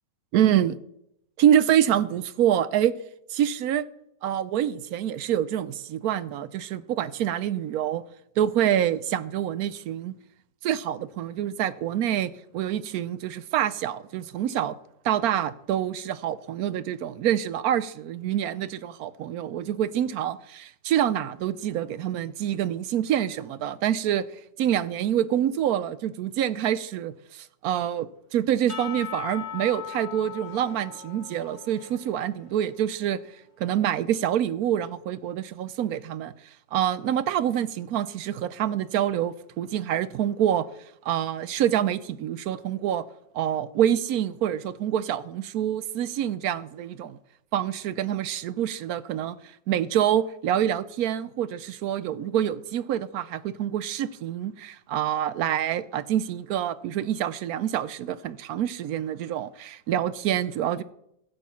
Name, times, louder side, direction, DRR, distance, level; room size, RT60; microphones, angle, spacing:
voice 1, 0.3-0.8 1.4-3.0 3.3-3.8 4.2-8.0 8.4-10.1 10.6-14.7 15.0-24.2 24.6-33.2 33.6-36.3 36.7-40.7 41.0-43.0 43.3-47.2 47.5-49.4 49.7-60.8, right 10 dB, 70° right, 0.9 m, -26 dB
Percussion / Church bell, 28.7-32.8, left 8 dB, 40° left, 1.4 m, -39 dB
15.5 x 6.8 x 5.7 m
omnidirectional pair, 2.0 m